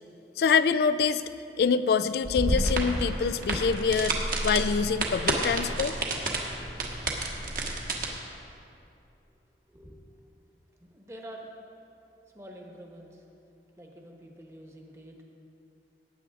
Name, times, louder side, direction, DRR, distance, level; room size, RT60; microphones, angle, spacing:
voice 1, 0.4-1.2 1.6-5.9, left 5 dB, 60° left, 12 dB, 0.3 m, -25 dB
sound 1, 2.2-8.1, right 2 dB, 50° right, 1.4 m, -30 dB
voice 2, 10.8-11.4 12.3-13.2 13.8-15.2, right 1 dB, 15° right, 1 dB, 1.1 m, -47 dB
18.5 x 9.0 x 3.6 m, 2.7 s
head